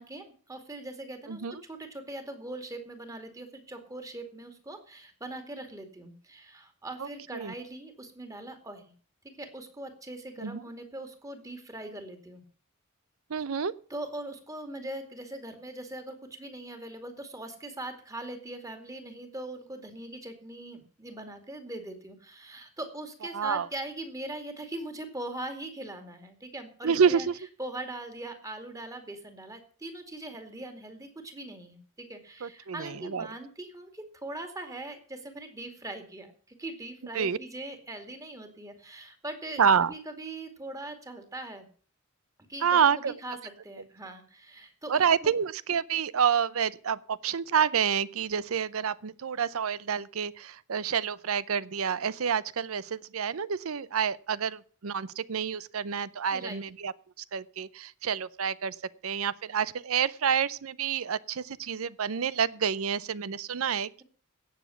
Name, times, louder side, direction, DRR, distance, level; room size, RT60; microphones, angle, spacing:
voice 1, 0.0-8.9 9.4-12.4 13.9-27.3 27.6-41.7 42.5-43.4 43.6-45.3 56.3-56.6, right 2 dB, 15° right, 7 dB, 2.4 m, -41 dB
voice 2, 7.0-7.5 10.4-10.6 13.3-13.7 23.3-23.7 26.8-27.3 32.4-33.3 37.1-37.4 39.6-39.9 42.6-43.1 44.9-58.7 59.0-64.0, right 7 dB, 70° right, 19 dB, 0.6 m, -28 dB
17.0 x 7.2 x 7.0 m, 0.43 s
head